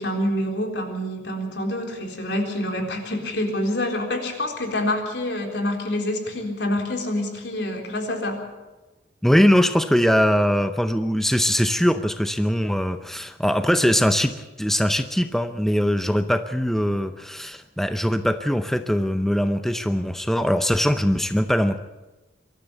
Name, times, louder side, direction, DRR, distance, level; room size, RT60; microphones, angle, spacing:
voice 1, 0.0-8.4, left 1 dB, 70° left, 2 dB, 3.9 m, -27 dB
voice 2, 9.2-21.8, equal, ahead, 8 dB, 0.7 m, -21 dB
24.0 x 13.5 x 8.2 m, 1.1 s
head